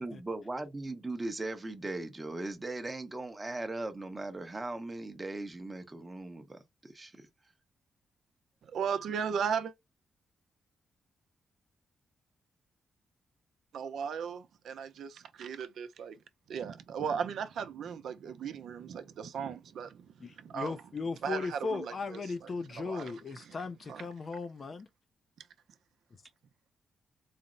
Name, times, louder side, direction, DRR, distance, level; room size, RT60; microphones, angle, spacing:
voice 1, 0.0-7.1, right 2 dB, 15° right, 0.7 m, -38 dB
voice 2, 8.6-9.7 13.7-16.2 16.5-20.7 21.2-22.2 22.8-23.1 23.9-24.1, right 7 dB, 70° right, 0.5 m, -36 dB
voice 3, 20.2-24.9, left 4 dB, 35° left, 0.4 m, -37 dB
4.1 x 2.0 x 3.7 m
wide cardioid pair, 145°, 0 cm